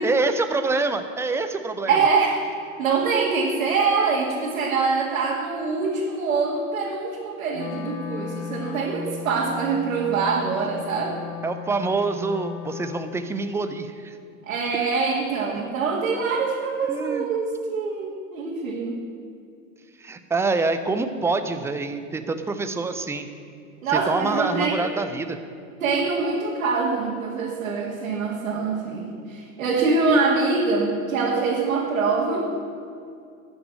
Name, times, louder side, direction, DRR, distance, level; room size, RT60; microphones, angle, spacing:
voice 1, 0.0-2.0 11.4-14.2 16.9-17.3 20.0-23.3 23.9-25.4, right 3 dB, 5° right, 9 dB, 0.5 m, -26 dB
voice 2, 1.9-2.4 2.8-11.2 14.4-19.0 23.8-24.9 25.8-32.5, right 4 dB, 80° right, -4 dB, 2.2 m, -24 dB
Wind instrument woodwind instrument, 7.5-13.5, left 7 dB, 60° left, 1.5 m, -36 dB
13.0 x 6.3 x 8.6 m, 2.4 s
hypercardioid pair, 125°, 40 cm